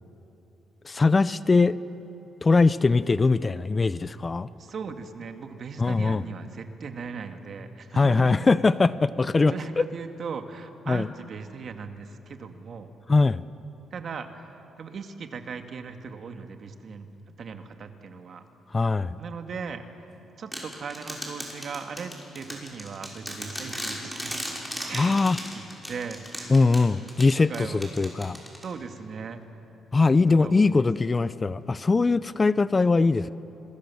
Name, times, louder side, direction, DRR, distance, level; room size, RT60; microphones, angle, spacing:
voice 1, 0.8-1.8 2.4-4.5 5.8-6.2 8.0-9.9 10.9-11.1 13.1-13.4 18.7-19.2 24.9-25.4 26.5-28.4 29.9-33.3, left 3 dB, 30° left, 16 dB, 0.6 m, -21 dB
voice 2, 4.6-8.4 9.4-12.9 13.9-17.1 17.4-18.4 19.2-19.8 20.4-24.4 24.8-26.6 27.5-27.9 28.6-29.5 30.3-30.9, right 5 dB, 55° right, 6 dB, 1.9 m, -38 dB
sound 1, 20.5-29.0, equal, ahead, 5.9 m, -37 dB
27.0 x 22.0 x 7.2 m, 2.9 s
cardioid pair, 90°, 0 cm